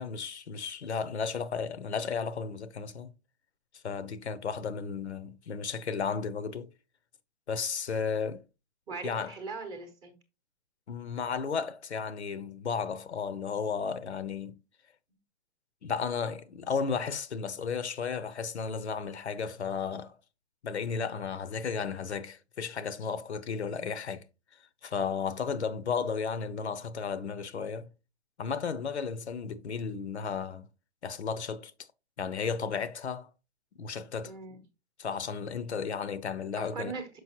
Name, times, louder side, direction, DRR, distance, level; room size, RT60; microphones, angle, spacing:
voice 1, 0.0-3.1 3.8-6.7 7.5-8.4 9.0-9.3 10.9-14.5 15.8-20.2 20.6-24.2 24.8-27.9 28.4-30.7 31.0-31.7 32.2-33.3 33.8-34.3 35.0-37.0, left 6 dB, 90° left, 0.8 m, -34 dB
voice 2, 8.9-10.2 34.2-34.6 36.5-37.2, right 4 dB, 10° right, 0.8 m, -40 dB
6.3 x 5.3 x 2.8 m
hypercardioid pair, 150°, 32 cm